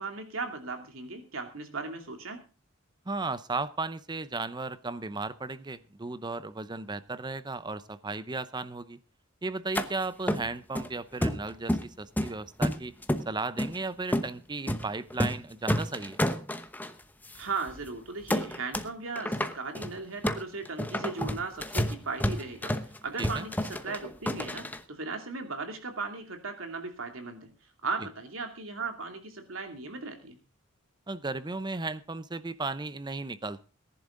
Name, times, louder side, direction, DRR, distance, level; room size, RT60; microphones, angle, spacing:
voice 1, 0.0-2.4 17.3-27.5 27.8-30.4, right 4 dB, 85° right, 5 dB, 2.7 m, -37 dB
voice 2, 3.1-9.0 9.4-12.9 13.3-16.2 23.2-23.5 31.1-33.6, right 3 dB, 20° right, 15 dB, 0.7 m, -35 dB
sound 1, 9.7-9.9 10.3-10.9 11.2-11.9 12.2-13.2 13.6-13.8 14.1-14.3 14.7-14.8 15.1-15.4 15.7-16.9 17.3-17.4 17.7-17.9 18.3-18.9 19.2-24.8, equal, 10° left, 0.9 m, -30 dB
19.0 x 11.0 x 3.8 m, 0.33 s
head